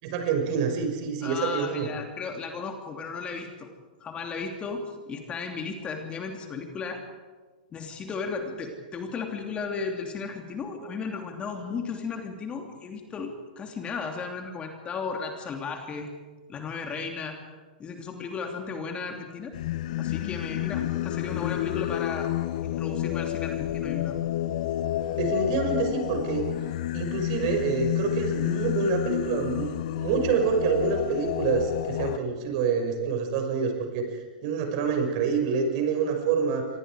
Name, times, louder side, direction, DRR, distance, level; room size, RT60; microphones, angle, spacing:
voice 1, 0.0-1.9 20.8-20.9 25.2-26.5 26.9-36.7, right 5 dB, 50° right, 4 dB, 5.8 m, -27 dB
voice 2, 1.2-3.7 4.0-7.0 7.7-16.1 16.5-17.4 17.8-19.5 20.0-22.3 22.6-24.2, left 5 dB, 25° left, 3 dB, 3.0 m, -35 dB
Singing, 19.5-32.2, left 13 dB, 55° left, 0.8 m, -29 dB
29.0 x 25.0 x 4.9 m, 1.4 s
hypercardioid pair, 110°, 5 cm